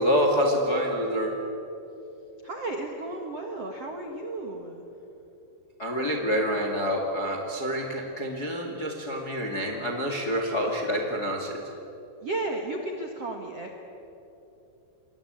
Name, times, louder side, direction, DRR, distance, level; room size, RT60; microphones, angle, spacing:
voice 1, 0.0-1.4 5.8-11.6, equal, 35° left, 3 dB, 1.7 m, -27 dB
voice 2, 2.4-4.8 12.2-13.8, right 2 dB, 55° right, 2 dB, 1.8 m, -33 dB
28.0 x 22.5 x 8.9 m, 3.0 s
omnidirectional pair, 5.2 m